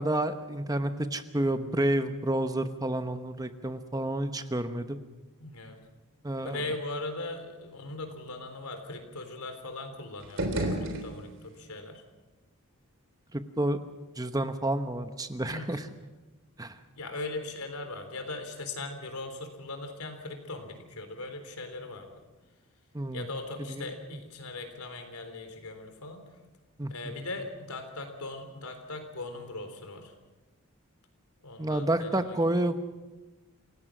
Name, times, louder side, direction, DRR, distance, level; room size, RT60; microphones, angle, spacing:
voice 1, 0.0-5.0 6.2-6.6 13.3-13.8 14.2-15.8 16.6-16.8 22.9-23.3 23.7-23.9 26.8-26.9 31.6-32.8, right 1 dB, 15° right, 9 dB, 1.0 m, -29 dB
voice 2, 5.4-5.8 6.4-12.0 15.5-15.8 17.0-22.2 23.1-26.2 26.9-30.1 31.4-32.4, left 2 dB, 85° left, 7 dB, 3.7 m, -39 dB
sound 1, 10.2-11.6, right 1 dB, 55° right, 3.6 m, -32 dB
28.5 x 16.5 x 6.2 m, 1.2 s
head